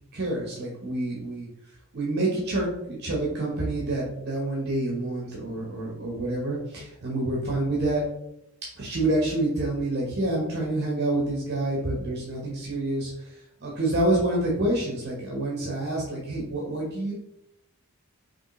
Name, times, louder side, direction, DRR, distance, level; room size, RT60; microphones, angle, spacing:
voice 1, 0.1-1.5 1.9-8.0 8.8-17.1, right 2 dB, 50° right, -3 dB, 1.0 m, -27 dB
5.1 x 3.1 x 3.1 m, 0.83 s
head